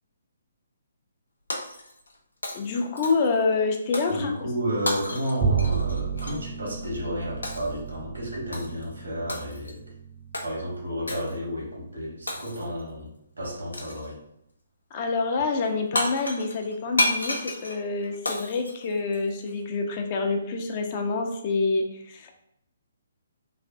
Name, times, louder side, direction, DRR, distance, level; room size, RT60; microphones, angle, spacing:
Shatter, 1.5-2.2 2.4-3.4 3.9-4.2 4.8-6.4 7.4-7.8 8.5-8.8 9.3-9.8 10.3-10.5 11.1-11.3 12.3-12.8 13.7-14.1 15.6-15.7 15.9-19.5, left 1 dB, 85° left, 0.6 m, -31 dB
voice 1, 2.5-4.3 14.9-22.5, left 4 dB, 35° left, 3 dB, 0.5 m, -27 dB
voice 2, 4.1-9.8 10.4-14.2, equal, 80° right, -2 dB, 1.3 m, -32 dB
Bowed string instrument, 5.4-11.9, right 6 dB, 20° right, 0.5 m, -32 dB
3.2 x 2.5 x 2.5 m, 0.78 s
figure-of-eight pair, 140°, 0 cm